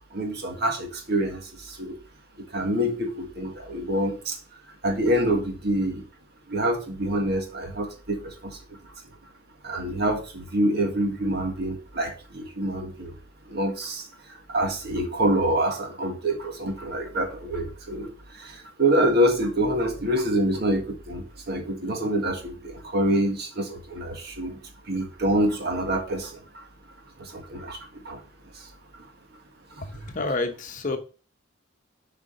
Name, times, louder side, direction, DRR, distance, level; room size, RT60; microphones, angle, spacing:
voice 1, 0.1-1.4 1.8-2.0 2.5-4.3 4.8-6.0 6.5-8.3 9.6-13.1 13.5-14.0 14.5-18.1 18.8-24.6 24.9-26.3 27.3-27.8 28.0-28.2, right 1 dB, 55° right, 1.7 m, -26 dB
voice 2, 29.8-31.0, left 2 dB, 40° left, 1.1 m, -29 dB
7.2 x 5.0 x 5.2 m
head